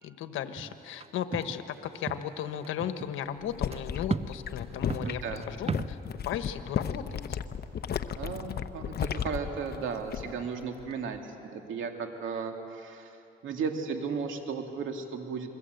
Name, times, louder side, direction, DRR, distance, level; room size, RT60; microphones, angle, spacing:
voice 1, 0.0-6.0 6.2-7.4, left 9 dB, 85° left, 9 dB, 1.3 m, -36 dB
sound 1, 0.6-1.1 1.3-1.6 1.8-2.3 2.6-3.1 3.7-3.9 4.1-4.3 4.7-6.0, right 5 dB, 30° right, 0.6 m, -35 dB
sound 2, 3.4-10.5 10.8-11.2, left 8 dB, 50° left, 1.0 m, -34 dB
voice 2, 5.0-5.4 8.2-13.2 13.4-15.5, right 5 dB, 80° right, 4 dB, 2.6 m, -35 dB
28.0 x 22.0 x 8.1 m, 2.8 s
cardioid pair, 90°, 20 cm